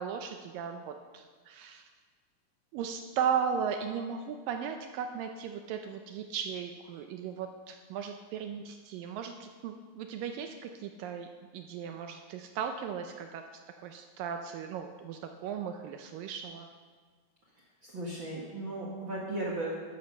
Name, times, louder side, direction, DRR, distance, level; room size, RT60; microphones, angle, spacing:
voice 1, 0.0-1.8 2.7-16.7, right 7 dB, 75° right, 6 dB, 2.2 m, -36 dB
voice 2, 17.8-19.7, right 1 dB, 45° right, -3 dB, 1.6 m, -36 dB
12.5 x 12.5 x 5.4 m, 1.5 s
omnidirectional pair, 4.4 m